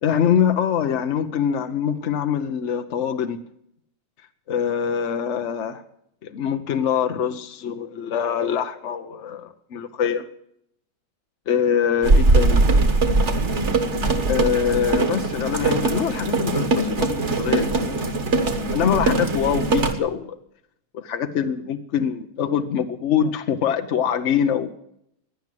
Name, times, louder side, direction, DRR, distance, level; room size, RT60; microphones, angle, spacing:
voice 1, 0.0-3.4 4.5-5.8 6.2-10.3 11.5-12.6 14.3-18.2 18.7-20.4 20.9-24.8, left 8 dB, 60° left, 8 dB, 0.7 m, -24 dB
sound 1, 12.0-19.9, right 2 dB, 40° right, 1.6 m, -21 dB
17.0 x 10.5 x 7.6 m, 0.76 s
omnidirectional pair, 2.2 m